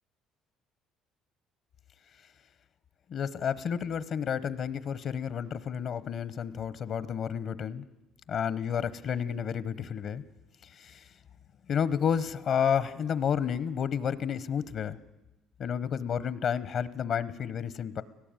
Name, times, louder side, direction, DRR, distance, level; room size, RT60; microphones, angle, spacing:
voice 1, 3.1-7.8 8.3-10.2 10.7-11.1 11.7-15.0 15.6-18.0, left 7 dB, 55° left, 17 dB, 0.9 m, -31 dB
18.0 x 17.0 x 9.0 m, 1.0 s
cardioid pair, 90°, 0 cm